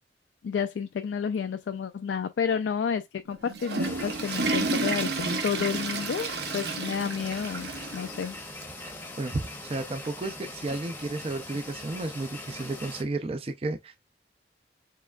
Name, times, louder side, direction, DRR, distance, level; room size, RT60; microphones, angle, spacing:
voice 1, 0.4-8.4, left 6 dB, 85° left, 0.3 m, -30 dB
Water / Toilet flush, 3.3-8.3 8.6-8.7 9.4-9.5 10.8-10.9, right 3 dB, 70° right, 0.9 m, -31 dB
sound 1, 3.8-13.0, left 2 dB, 10° left, 0.7 m, -41 dB
voice 2, 9.2-13.9, right 2 dB, 30° right, 0.4 m, -32 dB
4.6 x 3.3 x 2.2 m
head